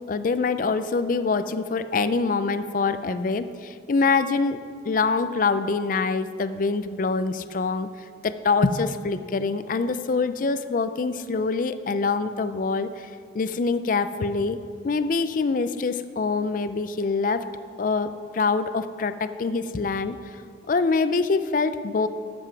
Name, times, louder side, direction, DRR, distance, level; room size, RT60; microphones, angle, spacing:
voice 1, 0.1-7.9 8.2-13.1 13.3-14.6 14.8-17.4 17.8-20.2 20.7-22.1, left 4 dB, 45° left, 12 dB, 0.4 m, -25 dB
12.5 x 7.9 x 4.6 m, 2.1 s
head